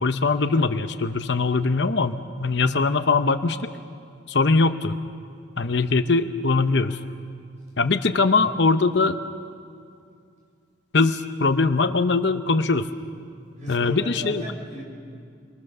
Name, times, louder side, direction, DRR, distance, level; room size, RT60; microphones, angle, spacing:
voice 1, 0.0-3.6 4.3-5.0 5.6-7.0 7.8-9.2 10.9-12.9 13.7-14.4, left 3 dB, 60° left, 9 dB, 0.8 m, -21 dB
voice 2, 13.6-14.8, equal, 35° right, -1 dB, 6.0 m, -36 dB
28.5 x 23.5 x 6.8 m, 2.3 s
head